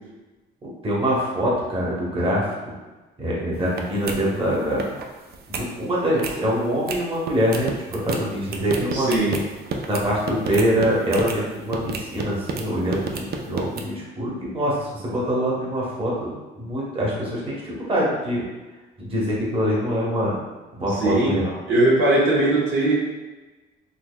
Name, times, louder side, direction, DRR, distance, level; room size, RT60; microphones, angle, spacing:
voice 1, 0.6-2.5 3.2-4.9 5.5-9.1 9.9-18.4 19.0-20.3 20.7-21.6, equal, 30° right, -5 dB, 1.0 m, -24 dB
sound 1, 3.5-3.8 4.1-4.2 4.5-5.0 5.3-5.6 6.1-6.4 6.9-7.0 7.3-11.4 11.7-12.6 12.9-13.8, right 4 dB, 55° right, 0.5 m, -30 dB
voice 2, 8.9-9.4 21.0-21.3 21.7-22.9, right 1 dB, 80° right, -7 dB, 1.2 m, -19 dB
4.1 x 2.8 x 2.2 m, 1.2 s
cardioid pair, 90°, 20 cm